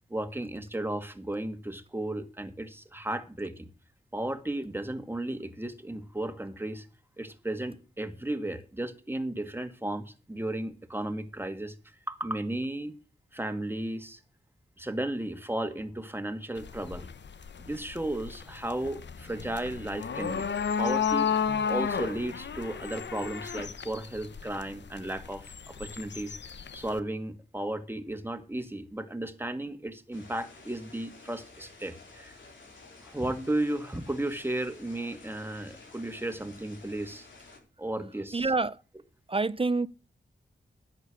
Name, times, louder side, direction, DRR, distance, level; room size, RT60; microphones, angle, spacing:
voice 1, 0.1-3.7 4.1-6.9 7.2-11.7 12.1-13.0 13.3-14.2 14.8-17.1 17.6-20.5 20.8-21.3 21.7-26.4 26.7-32.4 33.0-37.3 37.8-38.5, right 1 dB, 10° right, 2.0 m, -34 dB
sound 1, 16.6-27.0, left 7 dB, 70° left, 1.0 m, -33 dB
sound 2, 30.1-37.6, left 3 dB, 90° left, 4.1 m, -52 dB
voice 2, 38.3-38.8 39.3-39.9, right 3 dB, 30° right, 0.6 m, -27 dB
11.0 x 7.9 x 6.5 m
cardioid pair, 60°, 19 cm